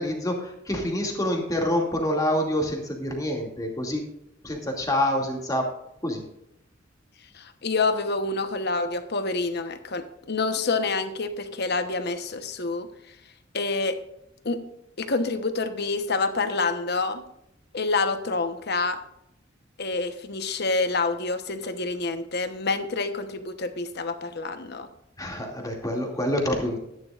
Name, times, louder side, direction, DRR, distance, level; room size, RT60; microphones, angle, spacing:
voice 1, 0.0-4.1 4.4-5.7 6.0-6.2 25.2-26.8, left 1 dB, 20° left, 1 dB, 2.5 m, -27 dB
voice 2, 7.3-12.9 13.5-14.0 14.4-14.6 15.0-17.2 17.7-19.0 19.8-24.9, left 3 dB, 55° left, 8 dB, 1.1 m, -27 dB
14.0 x 10.5 x 2.5 m, 0.81 s
head